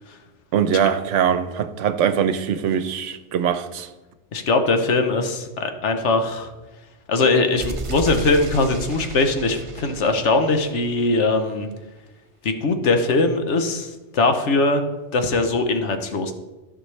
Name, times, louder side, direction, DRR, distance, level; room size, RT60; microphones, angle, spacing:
voice 1, 0.5-3.9, right 8 dB, 80° right, 1.0 m, -22 dB
voice 2, 4.3-6.5 7.1-11.7 12.4-14.8 15.1-16.3, left 3 dB, 70° left, 1.2 m, -21 dB
sound 1, 7.6-11.4, right 3 dB, 35° right, 0.6 m, -34 dB
13.5 x 5.9 x 3.2 m
omnidirectional pair, 1.3 m